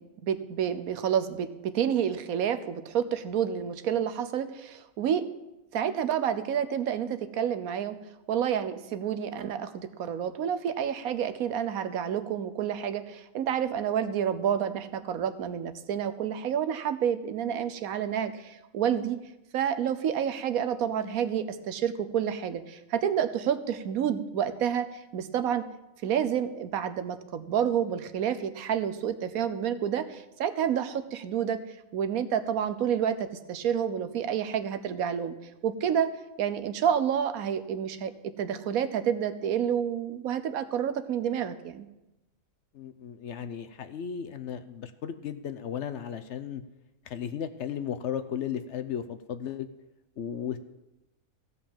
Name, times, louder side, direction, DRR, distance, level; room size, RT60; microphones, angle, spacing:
voice 1, 0.2-5.2 5.7-8.0 8.3-19.2 19.5-24.9 25.1-25.6 26.0-31.6 31.9-35.3 35.6-36.1 36.4-38.1 38.4-41.9, right 9 dB, 80° right, 11 dB, 1.2 m, -29 dB
voice 2, 42.7-46.6 47.0-49.7 50.2-50.6, left 8 dB, 60° left, 9 dB, 0.8 m, -35 dB
15.5 x 5.5 x 7.1 m, 0.95 s
omnidirectional pair, 1.5 m